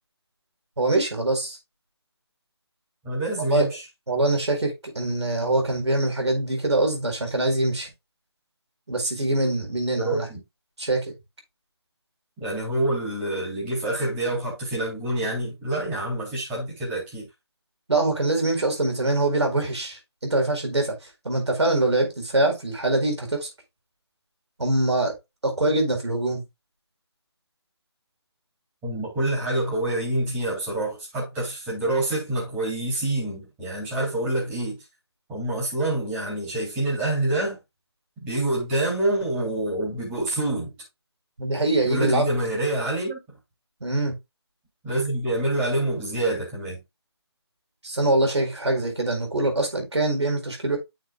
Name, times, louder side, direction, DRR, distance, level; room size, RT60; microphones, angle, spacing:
voice 1, 0.8-1.6 3.4-3.7 4.1-7.9 8.9-10.3 10.8-11.1 17.9-21.0 21.2-23.5 24.6-25.1 25.4-26.4 41.4-42.3 43.8-44.2 47.8-50.8, right 2 dB, 80° right, 4.4 m, -24 dB
voice 2, 3.0-3.8 10.0-10.4 12.4-17.3 28.8-34.8 35.3-37.6 38.2-40.7 41.8-43.2 44.8-46.8, right 1 dB, 10° right, 3.4 m, -26 dB
10.0 x 6.6 x 2.3 m
figure-of-eight pair, 165°, 14 cm